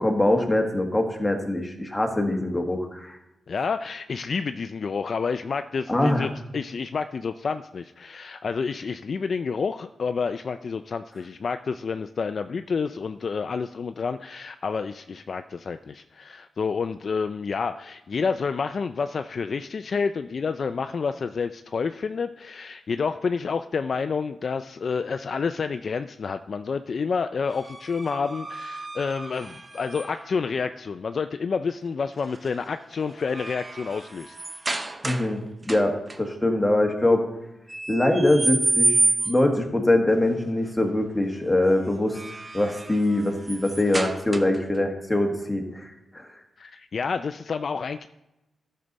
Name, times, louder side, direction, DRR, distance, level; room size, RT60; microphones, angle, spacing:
voice 1, 0.0-3.2 5.9-6.3 35.0-37.3 37.9-39.0 39.2-42.2 42.5-46.3, left 1 dB, 10° left, 2 dB, 1.5 m, -23 dB
voice 2, 3.5-34.4 46.6-48.1, left 5 dB, 45° left, 9 dB, 0.3 m, -29 dB
sound 1, 27.5-30.4 32.2-32.5 32.9-35.4 35.6-36.2 37.7-39.6 41.9-44.8, right 3 dB, 20° right, 0.7 m, -29 dB
13.5 x 6.6 x 4.0 m, 0.92 s
wide cardioid pair, 135°, 0 cm